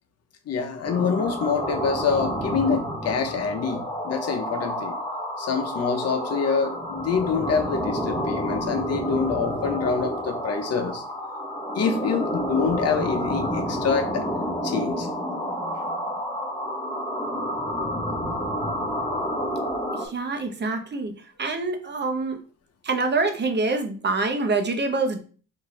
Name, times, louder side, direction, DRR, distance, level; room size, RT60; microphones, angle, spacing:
voice 1, 0.5-5.0 5.4-11.0 11.7-14.2 14.6-15.1, left 5 dB, 55° left, 0.8 m, -26 dB
sound 1, 0.8-20.1, equal, 10° left, 1.2 m, -29 dB
voice 2, 19.9-21.1 21.4-22.4 22.8-25.2, right 3 dB, 35° right, 0.9 m, -25 dB
4.0 x 2.7 x 3.1 m
cardioid pair, 90°, 30 cm